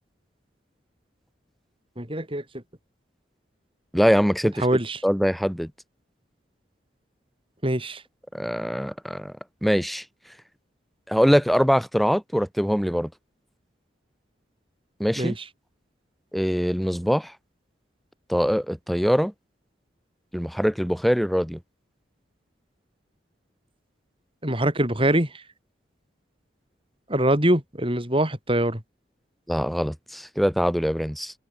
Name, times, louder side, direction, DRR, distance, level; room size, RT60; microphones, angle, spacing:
voice 1, 2.0-2.4 4.6-5.0 7.6-8.0 15.2-15.3 24.4-25.4 27.1-28.8, right 1 dB, 30° right, 6.2 m, -23 dB
voice 2, 3.9-4.7 5.0-5.7 8.3-9.3 9.6-10.0 11.1-13.1 15.0-15.4 16.3-17.3 18.3-19.3 20.3-21.6 29.5-31.3, equal, ahead, 7.4 m, -23 dB
head